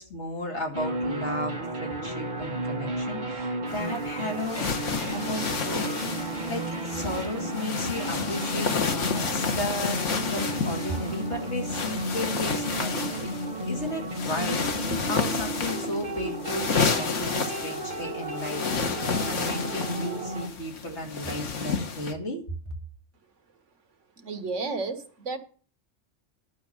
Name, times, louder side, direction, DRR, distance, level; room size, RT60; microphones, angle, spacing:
voice 1, 0.0-4.6 5.0-5.9 6.2-13.3 13.7-19.0 19.2-22.4, equal, 65° left, 2.7 m, -34 dB
sound 1, 0.7-20.5, right 1 dB, 40° right, 2.0 m, -33 dB
sound 2, 3.7-22.1, left 5 dB, 90° left, 1.6 m, -31 dB
voice 2, 24.2-25.4, right 3 dB, 80° right, 1.6 m, -32 dB
11.0 x 6.2 x 7.0 m
omnidirectional pair, 1.2 m